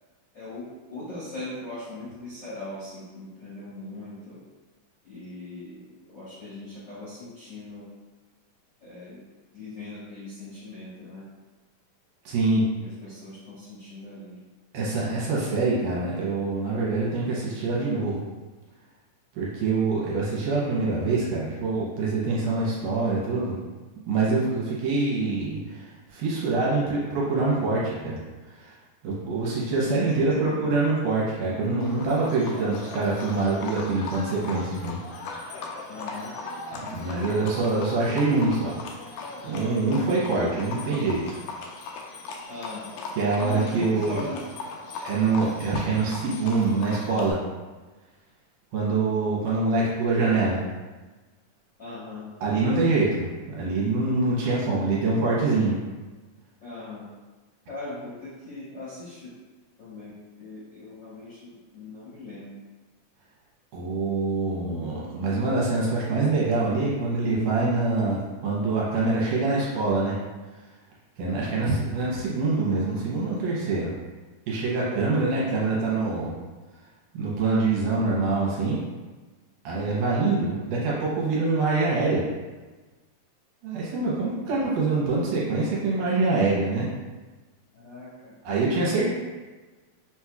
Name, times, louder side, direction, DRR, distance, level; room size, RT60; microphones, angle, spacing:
voice 1, 0.3-4.4 5.0-7.8 8.8-9.2 9.5-11.3 12.8-14.4 30.1-30.6 35.9-36.3 42.5-42.9 43.4-44.4 51.8-52.2 56.6-57.0 57.7-59.3 59.8-60.1 60.4-62.6 71.4-71.7 87.7-88.3 88.7-89.0, left 2 dB, 60° left, -12 dB, 1.1 m, -39 dB
voice 2, 12.3-12.6 14.7-18.2 19.3-23.6 24.1-25.8 26.1-28.2 28.6-28.7 29.0-35.0 35.2-35.6 36.7-38.8 39.4-41.4 43.2-44.2 45.0-47.4 48.7-50.6 52.4-55.8 63.7-70.2 71.2-73.9 74.5-76.3 77.1-78.8 79.6-82.2 83.6-86.9 88.5-89.0, right 3 dB, 75° right, -5 dB, 2.2 m, -25 dB
Livestock farm animals working animals, 31.8-47.3, left 3 dB, 85° left, 1.7 m, -38 dB
5.9 x 3.0 x 2.3 m, 1.2 s
omnidirectional pair, 4.1 m